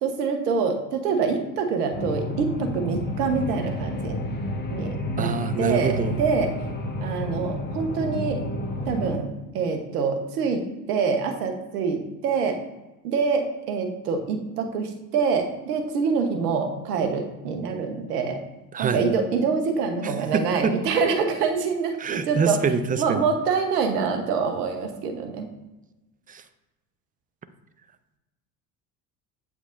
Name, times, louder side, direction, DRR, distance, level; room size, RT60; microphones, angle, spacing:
voice 1, 0.0-4.3 4.7-6.5 7.0-8.4 8.9-10.6 10.9-12.6 13.0-18.4 18.8-22.6 23.0-25.5, right 5 dB, 80° right, 5 dB, 1.2 m, -25 dB
sound 1, 1.9-9.2, left 1 dB, 20° left, 1.2 m, -30 dB
voice 2, 5.2-6.2 18.7-19.0 20.0-20.7 22.0-23.3 26.3-26.4, right 5 dB, 20° right, 11 dB, 0.5 m, -25 dB
8.2 x 5.1 x 2.6 m, 1.1 s
hypercardioid pair, 75°, 46 cm